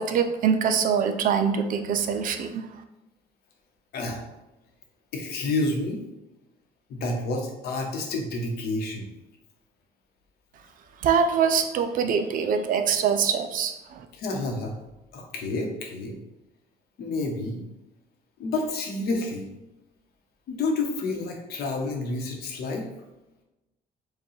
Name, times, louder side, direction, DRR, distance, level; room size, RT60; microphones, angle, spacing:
voice 1, 0.0-2.6 11.0-14.0, right 6 dB, 55° right, 7 dB, 0.4 m, -24 dB
voice 2, 5.1-6.0 6.9-9.1 14.1-14.7 15.1-16.2 17.0-17.6 18.4-19.4 20.5-22.9, left 2 dB, 65° left, 1 dB, 0.9 m, -29 dB
4.7 x 2.3 x 3.1 m, 0.96 s
cardioid pair, 110°, 17 cm